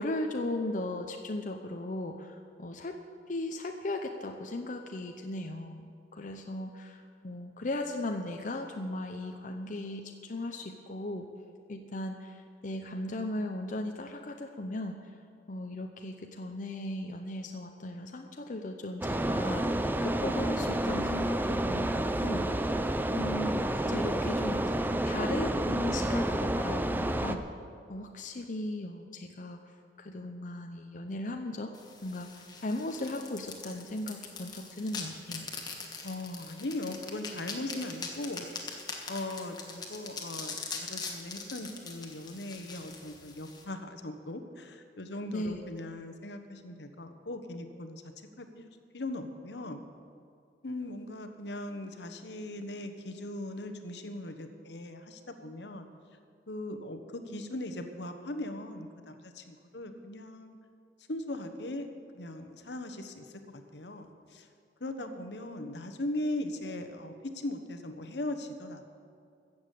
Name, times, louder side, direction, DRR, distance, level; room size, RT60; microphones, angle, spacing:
voice 1, 0.0-3.0 3.3-11.3 11.7-15.0 15.5-22.6 23.1-27.4 27.9-29.6 30.0-31.7 32.0-35.5 45.3-45.6, left 1 dB, 45° left, 4 dB, 0.7 m, -37 dB
sound 1, 19.0-27.4, right 1 dB, 10° right, 0.5 m, -30 dB
sound 2, 31.7-43.6, left 4 dB, 25° left, 1.5 m, -42 dB
voice 2, 36.0-38.8 39.1-48.0 48.4-49.8 50.6-55.9 56.5-60.6 61.1-61.9 62.1-64.5 64.8-68.8, left 1 dB, 75° left, 7 dB, 1.1 m, -39 dB
14.5 x 7.1 x 8.2 m, 2.3 s
head